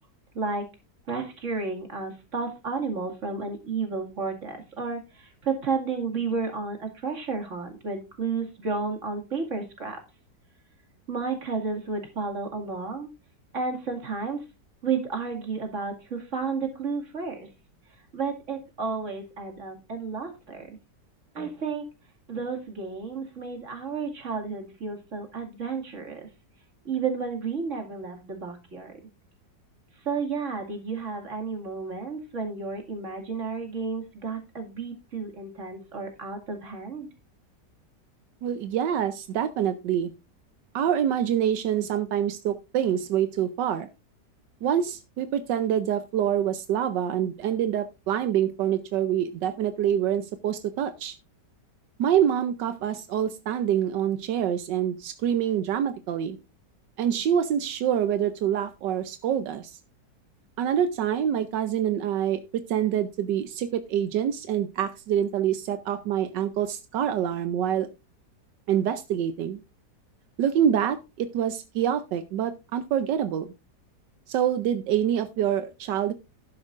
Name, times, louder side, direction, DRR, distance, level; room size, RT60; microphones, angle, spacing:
voice 1, 0.3-0.7 1.1-10.0 11.1-13.1 13.5-14.4 14.8-17.5 18.1-20.7 21.3-21.9 22.3-26.3 26.8-29.0 30.0-37.1, right 4 dB, 45° right, 4 dB, 2.5 m, -32 dB
voice 2, 38.4-40.1 40.7-43.9 44.6-51.2 52.0-56.4 57.0-59.8 60.6-67.9 68.7-69.6 70.4-73.5 74.3-76.1, right 9 dB, 85° right, 10 dB, 1.4 m, -26 dB
12.0 x 10.5 x 2.5 m, 0.26 s
omnidirectional pair, 1.8 m